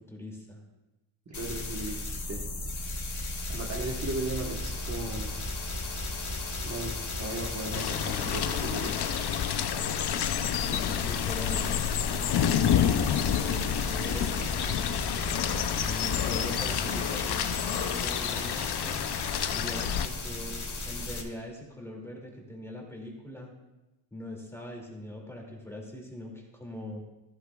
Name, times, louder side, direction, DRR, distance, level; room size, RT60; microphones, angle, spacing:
voice 1, 0.1-0.6 10.6-11.7 12.4-15.0 15.8-19.0 19.5-20.6 20.9-23.5 24.1-27.0, left 1 dB, 5° left, -1 dB, 2.4 m, -41 dB
sound 1, 1.3-21.2, left 2 dB, 35° left, 1.6 m, -35 dB
voice 2, 1.3-2.4 3.5-5.4 6.6-6.9 7.2-9.1, right 2 dB, 35° right, -2 dB, 1.3 m, -36 dB
sound 2, 7.7-20.1, left 9 dB, 55° left, 0.6 m, -29 dB
14.5 x 13.0 x 2.3 m, 1.0 s
wide cardioid pair, 140°, 47 cm